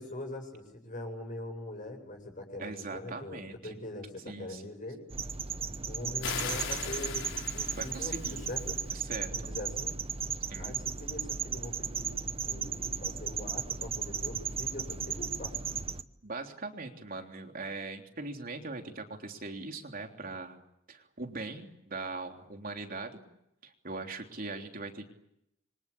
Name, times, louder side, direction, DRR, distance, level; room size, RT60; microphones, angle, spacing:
voice 1, 0.0-5.0 5.9-8.8 9.3-9.9 10.6-12.2 12.4-15.5, left 1 dB, 45° left, 3 dB, 7.7 m, -42 dB
voice 2, 2.6-3.8 4.3-4.9 7.7-8.5 8.9-9.5 10.5-10.8 16.2-20.6 20.9-23.2 23.6-25.1, right 3 dB, 50° right, 4 dB, 3.4 m, -41 dB
sound 1, 5.1-16.0, right 6 dB, 30° right, 1.0 m, -35 dB
sound 2, 6.2-8.8, left 6 dB, 80° left, 4.9 m, -39 dB
27.5 x 25.0 x 8.6 m, 0.81 s
head